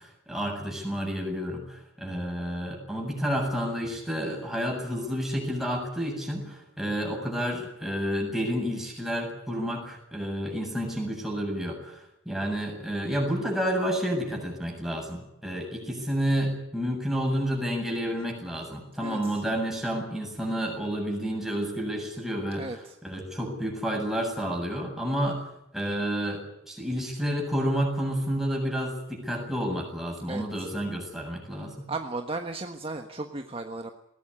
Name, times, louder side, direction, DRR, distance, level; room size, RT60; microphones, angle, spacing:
voice 1, 0.3-25.4 25.7-31.9, equal, ahead, 0 dB, 7.6 m, -30 dB
voice 2, 19.0-19.4 22.6-22.9 30.3-30.4 31.9-33.9, right 3 dB, 30° right, 4 dB, 1.5 m, -35 dB
21.0 x 18.5 x 9.9 m, 0.83 s
head